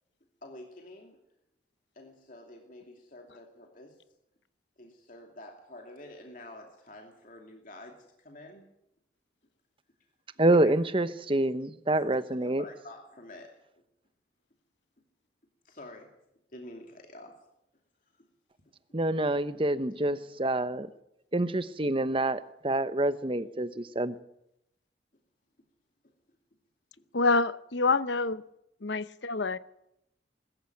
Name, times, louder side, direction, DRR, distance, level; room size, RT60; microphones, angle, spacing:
voice 1, 0.4-1.2 1.9-4.0 4.8-8.7 10.6-10.7 11.9-13.5 15.6-16.1 16.5-17.4 18.2-18.3 26.0-26.1 27.0-27.1, left 1 dB, 45° left, 2.7 m, -48 dB
voice 2, 10.4-12.6 18.9-20.9 21.3-24.1, right 1 dB, 30° right, 0.9 m, -27 dB
voice 3, 27.1-28.4 28.8-29.6, left 3 dB, 75° left, 0.9 m, -27 dB
21.0 x 14.0 x 9.3 m
head